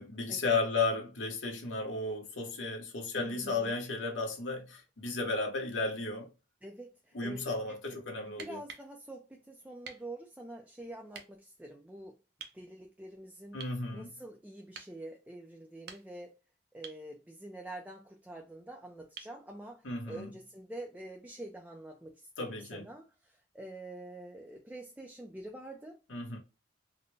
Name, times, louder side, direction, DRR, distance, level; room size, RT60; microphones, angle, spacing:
voice 1, 0.0-6.3 7.1-8.6 13.5-14.1 19.8-20.3 22.4-22.8 26.1-26.4, left 3 dB, 80° left, 1.1 m, -34 dB
voice 2, 3.1-3.8 6.6-7.8 8.3-12.2 12.5-13.6 13.9-16.3 16.7-26.0, right 1 dB, 5° right, 0.4 m, -46 dB
sound 1, 8.3-8.9 9.8-10.1 11.1-11.3 12.4-12.6 13.6-13.8 14.7-15.0 15.7-16.3 16.8-17.1 19.2-19.4 21.2-21.3, right 6 dB, 55° right, 0.7 m, -48 dB
4.0 x 2.2 x 3.2 m
head